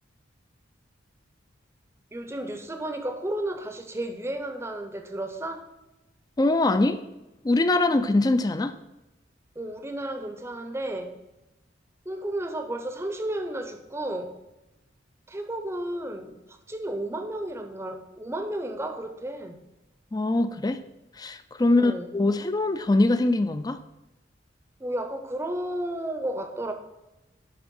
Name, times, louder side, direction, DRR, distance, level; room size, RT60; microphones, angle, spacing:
voice 1, 2.1-5.6 9.6-11.1 12.1-14.3 15.3-19.6 21.6-22.1 24.8-26.7, right 1 dB, 15° right, 6 dB, 0.7 m, -33 dB
voice 2, 6.4-7.0 7.4-8.7 20.1-20.8 21.2-23.8, left 2 dB, 20° left, 11 dB, 0.4 m, -23 dB
10.0 x 3.5 x 5.3 m, 0.99 s
head